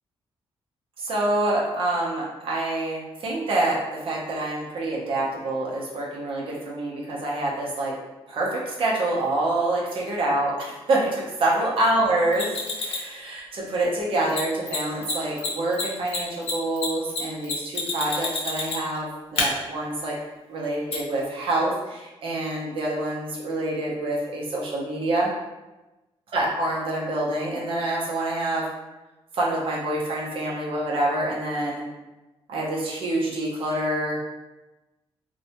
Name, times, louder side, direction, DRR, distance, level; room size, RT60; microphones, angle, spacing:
voice 1, 1.0-7.9 8.3-20.1 20.5-25.3 26.3-28.6 29.3-31.8 32.5-34.2, right 2 dB, 60° right, -4 dB, 0.6 m, -26 dB
Mechanisms, 12.3-13.1 14.3-14.4 14.7-14.8 15.0-15.1 15.4-19.0 19.4-19.5 20.9-21.0, left 4 dB, 70° left, 0.7 m, -28 dB
2.6 x 2.1 x 2.8 m, 1.1 s
cardioid pair, 140°, 11 cm